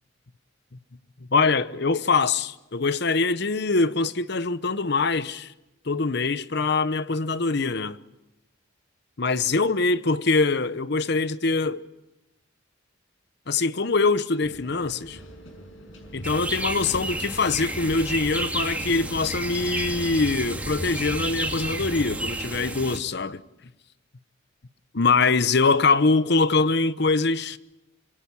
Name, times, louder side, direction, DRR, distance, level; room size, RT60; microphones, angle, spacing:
voice 1, 1.3-5.5 5.8-8.0 9.2-11.8 13.5-15.2 16.1-23.4 24.9-27.6, left 3 dB, 55° left, 0.9 m, -23 dB
sound 1, 14.4-22.2, equal, 75° left, 6.3 m, -41 dB
sound 2, 16.2-23.0, right 2 dB, 10° right, 2.3 m, -31 dB
26.0 x 23.0 x 7.2 m
head